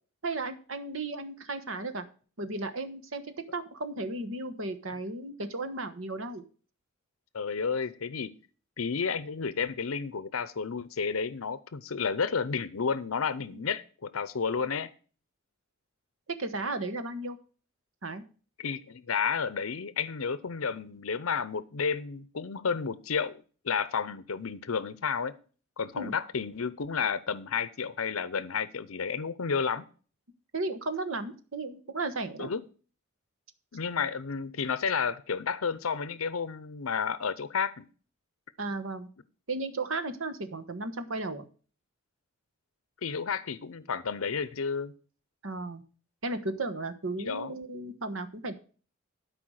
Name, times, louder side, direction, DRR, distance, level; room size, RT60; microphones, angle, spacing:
voice 1, 0.2-2.0 2.4-3.2 3.5-6.4 13.5-13.6 16.3-17.4 18.0-18.2 26.0-26.1 30.5-32.5 38.6-39.1 39.5-41.4 45.4-45.8 46.2-48.6, right 2 dB, 65° right, 1.3 m, -34 dB
voice 2, 7.3-8.3 8.8-14.9 18.6-23.4 23.6-25.4 25.8-29.8 32.4-32.6 33.7-37.9 43.0-44.9 47.2-47.5, left 6 dB, 80° left, 0.7 m, -31 dB
12.5 x 5.0 x 6.3 m
head